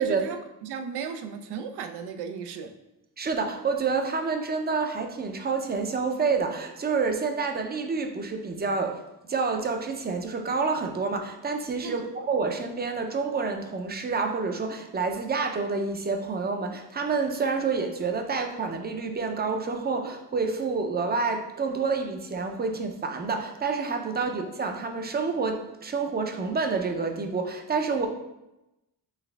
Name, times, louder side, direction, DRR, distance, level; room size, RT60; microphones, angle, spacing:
voice 1, 0.0-2.7 11.8-12.0, right 6 dB, 90° right, 6 dB, 0.6 m, -36 dB
voice 2, 3.2-9.0 9.3-28.1, right 4 dB, 25° right, 4 dB, 0.5 m, -28 dB
4.8 x 3.3 x 3.3 m, 0.94 s
cardioid pair, 110°, 38 cm